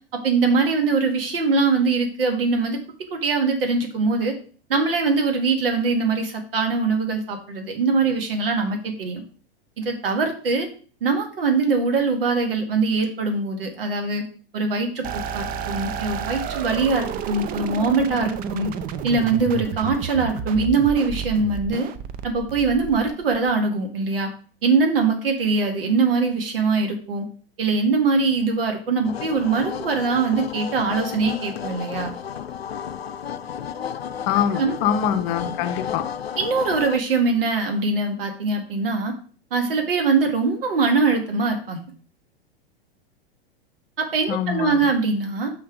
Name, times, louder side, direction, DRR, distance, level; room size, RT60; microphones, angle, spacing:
voice 1, 0.1-2.8 3.1-4.4 4.7-9.2 9.8-10.7 11.0-14.2 14.5-18.7 19.0-21.9 22.2-24.3 24.6-27.3 27.6-32.1 34.6-34.8 36.4-39.1 39.5-41.8 44.0-45.5, right 4 dB, 70° right, 4 dB, 2.0 m, -22 dB
sound 1, 15.0-23.5, right 8 dB, 30° right, 0.6 m, -31 dB
sound 2, 29.0-37.0, left 8 dB, 85° left, 0.6 m, -32 dB
voice 2, 34.3-36.1 44.3-44.9, left 9 dB, 40° left, 10 dB, 0.8 m, -24 dB
6.2 x 5.9 x 4.8 m, 0.42 s
figure-of-eight pair, 95°, 30 cm